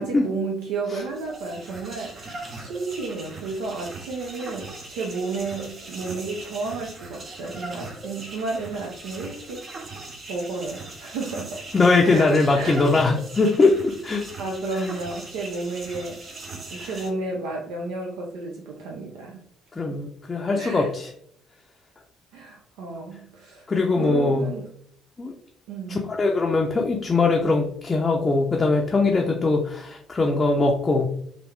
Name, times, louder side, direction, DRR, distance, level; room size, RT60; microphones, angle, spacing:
voice 1, 0.0-9.7 10.3-11.6 12.1-12.8 14.4-16.2 16.7-19.4 20.5-20.9 22.3-23.7 24.0-24.7 25.7-26.0, right 3 dB, 65° right, -1 dB, 0.5 m, -32 dB
sound 1, 1.0-17.1, right 2 dB, 40° right, 0.8 m, -40 dB
voice 2, 11.7-14.3 16.8-16.9 19.8-21.1 23.7-24.5 25.2-25.3 25.9-31.1, left 3 dB, 25° left, 0 dB, 0.5 m, -21 dB
3.1 x 2.6 x 3.1 m, 0.66 s
figure-of-eight pair, 50°, 0 cm